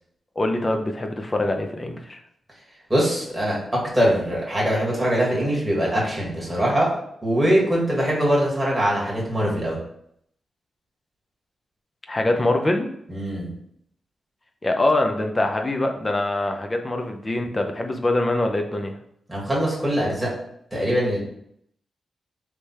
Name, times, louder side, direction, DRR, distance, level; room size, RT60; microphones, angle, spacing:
voice 1, 0.4-2.2 12.1-12.9 14.6-18.9, left 2 dB, 25° left, 4 dB, 0.6 m, -24 dB
voice 2, 2.9-6.9 7.2-9.8 13.1-13.5 19.3-20.3 20.7-21.2, equal, 5° right, -5 dB, 1.8 m, -22 dB
3.3 x 3.3 x 4.2 m, 0.72 s
cardioid pair, 100°, 0 cm